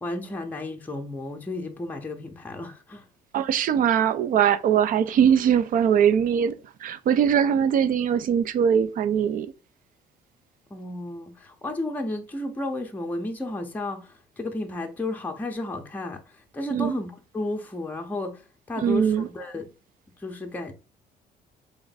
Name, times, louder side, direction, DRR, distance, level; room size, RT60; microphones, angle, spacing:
voice 1, 0.0-3.1 10.7-19.7 20.2-20.7, left 2 dB, 10° left, 0.6 m, -33 dB
voice 2, 3.3-9.5 16.7-17.0 18.8-19.3, right 8 dB, 55° right, 0.5 m, -21 dB
3.5 x 2.5 x 3.9 m
cardioid pair, 110°, 17 cm